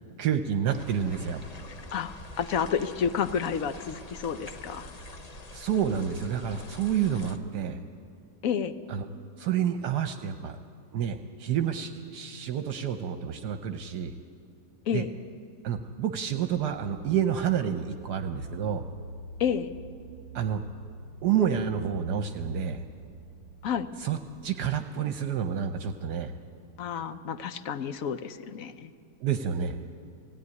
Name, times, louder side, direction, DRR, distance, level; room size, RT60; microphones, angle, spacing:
voice 1, 0.2-1.4 5.5-7.8 8.9-9.1 9.4-10.6 10.9-14.1 14.9-15.0 15.6-18.8 20.3-20.6 21.2-22.8 24.0-24.2 24.4-26.3 29.2-29.8, right 8 dB, 70° right, 7 dB, 1.3 m, -29 dB
sound 1, 0.7-7.4, left 1 dB, 30° left, 0.7 m, -45 dB
voice 2, 1.9-4.9 8.4-8.7 14.9-15.1 19.4-19.7 23.6-23.9 26.8-28.9, left 7 dB, 60° left, 11 dB, 1.0 m, -30 dB
sound 2, 16.4-24.5, right 2 dB, 85° left, 5.2 m, -46 dB
17.5 x 16.0 x 9.6 m, 2.3 s
omnidirectional pair, 1.9 m